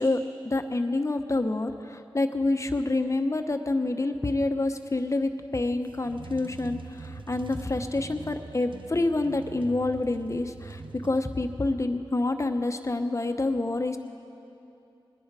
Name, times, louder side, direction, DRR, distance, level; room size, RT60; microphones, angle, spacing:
voice 1, 0.0-14.0, left 2 dB, 35° left, 7 dB, 0.9 m, -27 dB
sound 1, 5.7-11.7, right 4 dB, 65° right, 0.6 m, -43 dB
20.5 x 10.0 x 4.8 m, 2.8 s
cardioid pair, 45°, 9 cm